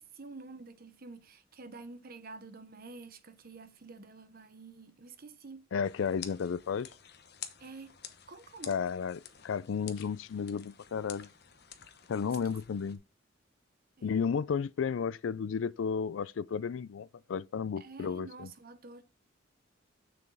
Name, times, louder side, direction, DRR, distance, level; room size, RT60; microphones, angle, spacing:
voice 1, 0.0-5.7 7.6-8.0 8.3-8.8 12.2-12.6 14.0-14.2 17.8-19.0, right 3 dB, 50° right, 0.9 m, -49 dB
voice 2, 5.7-6.9 8.7-11.3 12.1-13.0 14.0-18.5, left 6 dB, 85° left, 0.4 m, -33 dB
sound 1, 5.8-13.0, left 10 dB, 55° left, 1.0 m, -50 dB
6.8 x 6.8 x 4.0 m
head